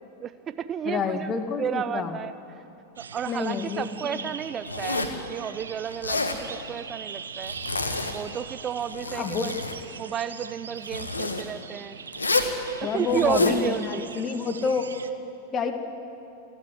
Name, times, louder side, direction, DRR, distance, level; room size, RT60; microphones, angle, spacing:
voice 1, 0.0-2.6 3.0-7.6 8.1-9.5 10.0-12.0 12.8-14.1, right 8 dB, 25° right, 13 dB, 0.6 m, -32 dB
voice 2, 0.9-2.2 3.3-4.2 9.1-9.5 12.8-14.9 15.5-15.7, left 5 dB, 25° left, 6 dB, 2.2 m, -28 dB
sound 1, 3.0-15.1, right 6 dB, 70° right, 1.0 m, -41 dB
Zipper (clothing), 4.7-5.2 5.9-6.4 7.4-8.2 8.8-9.8 10.9-11.4 12.1-12.6 13.1-13.6, left 3 dB, 75° left, 1.8 m, -28 dB
28.5 x 12.0 x 9.9 m, 2.8 s
figure-of-eight pair, 90°, 0 cm